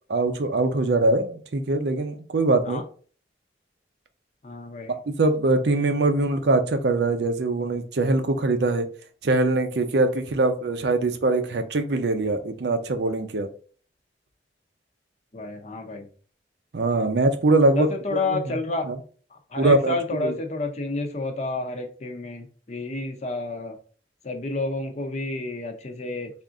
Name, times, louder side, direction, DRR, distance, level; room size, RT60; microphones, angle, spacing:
voice 1, 0.0-2.8 5.1-8.9 9.2-13.5 16.7-18.4 18.9-19.0 19.6-19.9 20.2-20.3, right 2 dB, 70° right, 8 dB, 0.5 m, -22 dB
voice 2, 4.4-5.0 15.3-16.1 17.6-18.8 19.3-23.8 24.2-26.3, left 2 dB, 40° left, 5 dB, 0.6 m, -30 dB
3.5 x 2.5 x 3.8 m, 0.42 s
head